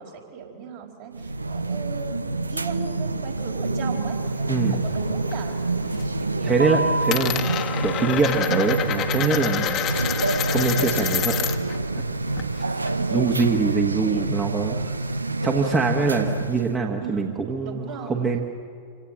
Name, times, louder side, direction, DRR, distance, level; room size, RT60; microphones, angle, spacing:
voice 1, 0.0-5.6 5.8-6.8 13.0-13.4 13.9-15.2 17.0-18.3, right 6 dB, 55° right, 0 dB, 4.6 m, -38 dB
sound 1, 1.1-16.7, right 2 dB, 80° right, 0.6 m, -27 dB
Coin (dropping), 4.2-5.4 5.7-6.2 6.5-11.8 12.0-13.7, left 10 dB, 35° left, 1.3 m, -28 dB
voice 2, 4.5-4.8 6.4-7.4 7.8-9.8 10.5-11.5 11.9-12.0 13.1-14.8 15.4-18.4, right 4 dB, 20° right, 1 dB, 1.6 m, -24 dB
26.5 x 17.5 x 7.7 m, 2.4 s
figure-of-eight pair, 90°, 0 cm